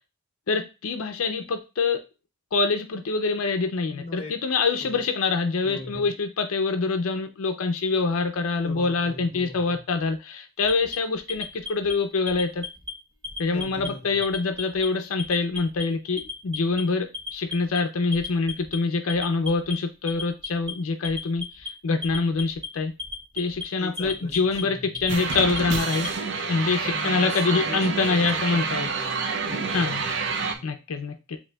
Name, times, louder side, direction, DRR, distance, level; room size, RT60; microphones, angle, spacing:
voice 1, 0.5-2.0 2.5-12.7 13.4-22.9 23.3-28.9 29.7-30.0 30.6-31.4, left 4 dB, 85° left, 6 dB, 0.5 m, -25 dB
voice 2, 3.9-4.3 4.8-5.0 5.6-6.1 8.6-9.8 13.5-14.2 23.8-25.1 25.6-25.9 26.8-30.6, left 2 dB, 30° left, 3 dB, 1.0 m, -40 dB
Alarm, 10.6-11.9 12.3-12.9 13.2-13.9 14.2-14.9 15.2-15.8 16.2-16.8 17.1-17.8 18.1-18.8 19.1-19.7 20.1-20.7 21.0-21.7 22.0-22.7 23.0-23.6 24.0-24.6 24.9-26.1, left 4 dB, 20° right, 0.9 m, -35 dB
sound 1, 25.1-30.5, right 4 dB, 55° right, 0.5 m, -28 dB
7.5 x 2.7 x 2.3 m, 0.29 s
head